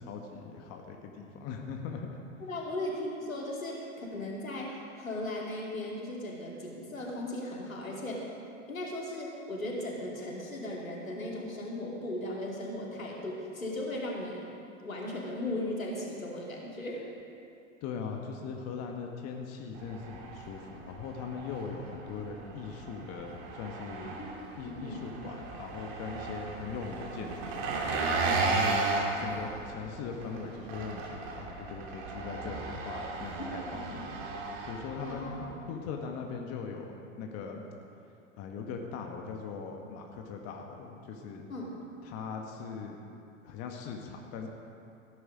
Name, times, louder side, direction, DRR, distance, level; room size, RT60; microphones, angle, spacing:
voice 1, 0.0-2.1 17.8-24.2 24.6-27.8 28.4-28.8 29.2-34.0 34.6-37.6 38.4-41.5 42.0-43.0 43.4-44.5, left 5 dB, 40° left, 2 dB, 1.5 m, -40 dB
voice 2, 2.4-8.3 8.7-14.4 14.8-17.0 24.3-25.1 28.2-28.5 33.3-34.0 35.0-35.5 41.5-41.8, left 1 dB, 90° left, -3 dB, 2.9 m, -37 dB
Engine, 19.8-35.6, right 3 dB, 50° right, 2.5 m, -35 dB
16.5 x 10.0 x 5.1 m, 2.7 s
figure-of-eight pair, 100°, 40 cm